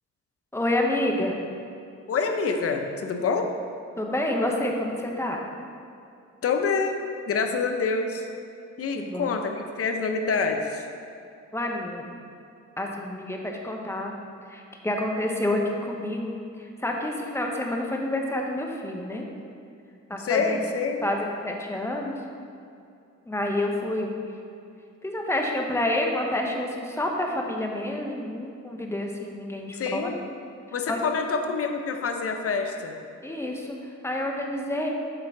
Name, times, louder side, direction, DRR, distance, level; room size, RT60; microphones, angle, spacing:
voice 1, 0.5-1.4 4.0-5.4 9.0-9.3 11.5-12.1 12.8-14.1 14.5-19.3 20.1-20.6 21.0-22.2 23.3-24.1 25.0-30.1 30.9-31.0 33.2-34.9, left 1 dB, 10° left, 0 dB, 1.0 m, -28 dB
voice 2, 2.1-3.5 6.4-7.0 7.3-8.3 8.8-10.8 20.2-21.0 29.7-30.1 30.7-33.0, left 5 dB, 50° left, 5 dB, 0.8 m, -26 dB
7.9 x 3.8 x 6.0 m, 2.5 s
cardioid pair, 90°, 30 cm